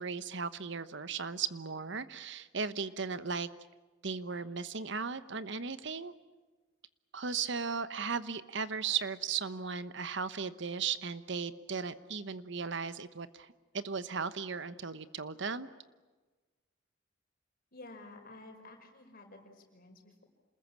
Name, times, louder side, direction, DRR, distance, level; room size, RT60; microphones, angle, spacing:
voice 1, 0.0-3.5 4.0-6.1 7.1-13.5 13.7-15.7, right 5 dB, 60° right, 13 dB, 1.1 m, -36 dB
voice 2, 17.7-20.2, left 2 dB, 45° left, 3 dB, 5.3 m, -52 dB
28.0 x 20.5 x 8.8 m, 1.3 s
head